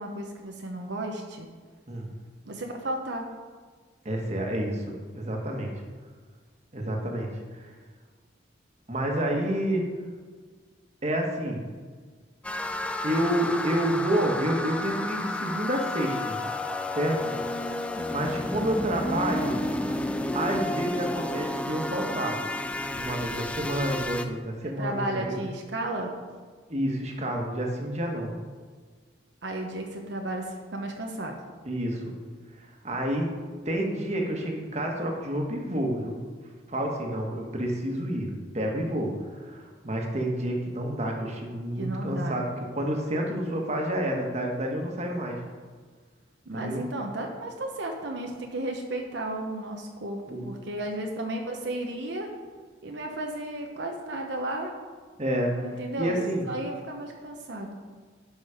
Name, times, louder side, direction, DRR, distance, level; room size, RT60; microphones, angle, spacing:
voice 1, 0.0-1.5 2.5-3.3 24.6-26.2 29.4-31.4 41.8-42.4 46.5-52.3 52.8-54.7 55.6-56.2 56.5-57.8, right 1 dB, 65° right, 2 dB, 0.9 m, -33 dB
voice 2, 4.0-5.7 6.7-7.7 8.9-9.8 11.0-11.6 13.0-16.4 16.9-17.3 18.1-19.9 20.3-22.4 22.9-25.4 26.7-28.3 31.6-32.2 32.5-33.3 33.6-36.2 36.7-45.4 46.5-46.8 50.3-50.5 55.2-55.7 56.0-56.5, right 1 dB, 35° right, 1 dB, 1.5 m, -29 dB
sound 1, 12.4-24.3, left 1 dB, 5° left, 0.4 m, -31 dB
11.5 x 6.0 x 5.0 m, 1.5 s
head